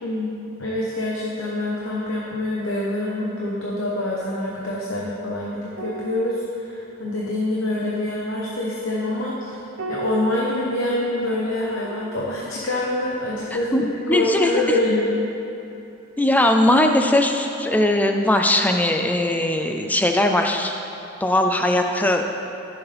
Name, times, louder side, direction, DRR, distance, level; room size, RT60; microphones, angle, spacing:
voice 1, 0.0-9.6 9.9-15.1, left 1 dB, 65° left, -5 dB, 1.0 m, -26 dB
sound 1, 5.7-14.4 14.7-15.0, right 3 dB, 75° right, 0.7 m, -40 dB
voice 2, 13.7-14.5 16.2-20.8 21.2-22.3, left 1 dB, 10° left, 4 dB, 0.4 m, -19 dB
13.5 x 7.1 x 3.4 m, 2.8 s
head